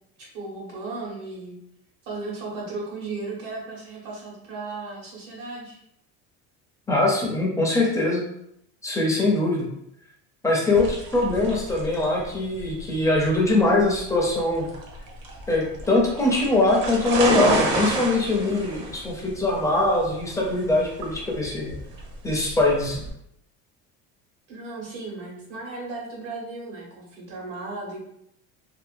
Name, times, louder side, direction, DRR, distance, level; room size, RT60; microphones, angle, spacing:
voice 1, 0.2-1.6 2.0-5.8 24.5-28.1, right 3 dB, 85° right, -4 dB, 1.3 m, -35 dB
voice 2, 6.9-8.2 8.8-9.7 10.4-14.7 15.5-21.7 22.2-23.0, left 2 dB, 10° left, -2 dB, 0.4 m, -22 dB
sound 1, 10.7-23.1, right 2 dB, 60° right, 0.7 m, -30 dB
2.8 x 2.1 x 2.5 m, 0.74 s
cardioid pair, 145°, 34 cm